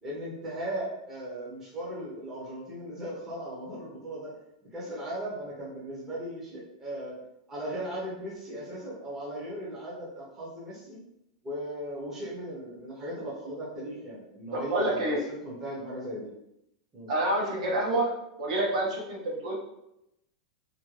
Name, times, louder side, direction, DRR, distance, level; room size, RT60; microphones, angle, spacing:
voice 1, 0.0-4.3 4.6-7.2 7.5-11.0 11.4-16.3 16.9-17.1, right 1 dB, 10° right, -7 dB, 0.7 m, -37 dB
voice 2, 14.5-15.2 17.1-18.1 18.4-19.5, right 1 dB, 60° right, -2 dB, 0.9 m, -27 dB
2.7 x 2.5 x 3.1 m, 0.83 s
supercardioid pair, 175°, 4 cm